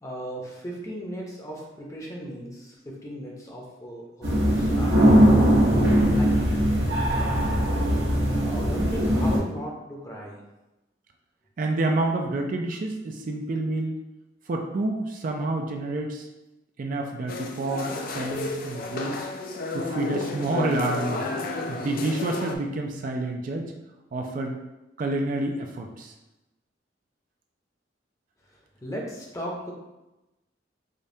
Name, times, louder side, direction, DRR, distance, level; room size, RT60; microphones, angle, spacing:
voice 1, 0.0-5.3 6.1-6.5 7.1-7.6 8.4-10.4 28.8-29.7, equal, 20° left, -2 dB, 0.7 m, -36 dB
sound 1, 4.2-9.4, equal, 85° right, 1.2 m, -20 dB
voice 2, 11.6-14.0 14.5-16.2 16.8-19.3 19.7-21.3 21.7-23.7 24.1-24.6 25.0-26.1, right 2 dB, 45° right, 2 dB, 0.4 m, -28 dB
sound 2, 17.3-22.6, left 3 dB, 50° left, 0.4 m, -32 dB
5.0 x 2.2 x 2.7 m, 0.98 s
head